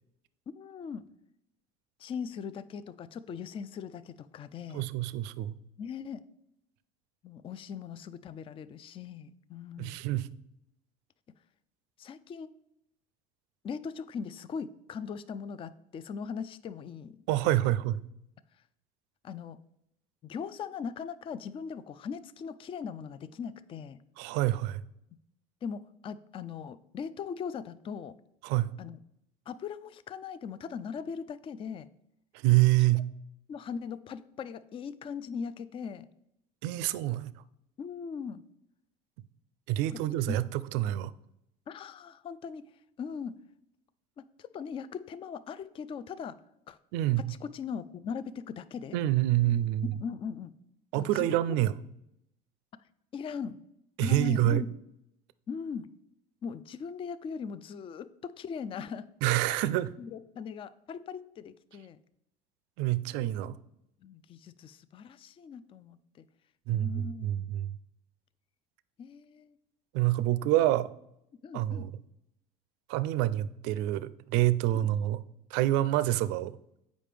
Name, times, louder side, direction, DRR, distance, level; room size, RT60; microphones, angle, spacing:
voice 1, 0.5-1.1 2.0-4.9 5.8-6.2 7.2-10.0 12.0-12.5 13.6-17.2 19.2-19.6 20.2-24.0 25.6-28.1 28.8-29.0 29.5-31.9 33.5-36.1 37.8-38.4 39.9-40.0 40.3-40.4 41.7-42.7 43.0-43.4 44.2-46.4 46.7-46.8 47.2-49.0 50.0-50.5 50.9-51.6 53.1-53.6 54.0-54.7 55.5-55.9 56.4-59.1 59.5-59.7 60.0-62.0 64.0-66.3 66.7-67.5 69.0-69.6 71.4-71.9 74.7-74.9, left 6 dB, 30° left, 15 dB, 0.3 m, -39 dB
voice 2, 4.7-5.6 9.8-10.3 17.3-18.0 24.2-24.8 28.4-28.7 32.4-33.0 36.6-37.3 39.7-41.1 46.9-47.3 48.9-49.9 50.9-51.7 54.0-54.7 59.2-59.9 62.8-63.6 66.7-67.7 69.9-70.9 71.5-71.9 72.9-75.2 75.5-76.5, right 14 dB, 70° right, 16 dB, 0.4 m, -27 dB
7.4 x 5.1 x 3.3 m, 0.79 s
hypercardioid pair, 80°, 19 cm